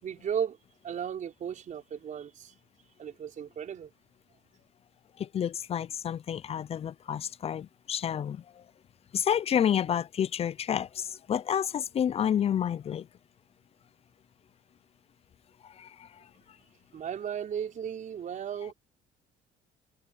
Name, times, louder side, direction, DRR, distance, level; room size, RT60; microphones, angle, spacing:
voice 1, 0.0-0.6 0.8-2.5 3.0-3.9 16.9-18.7, right 8 dB, 50° right, 5.3 m, -35 dB
voice 2, 5.2-8.4 9.1-13.1 15.6-16.1, left 9 dB, 35° left, 0.5 m, -29 dB
cardioid pair, 110°, 17 cm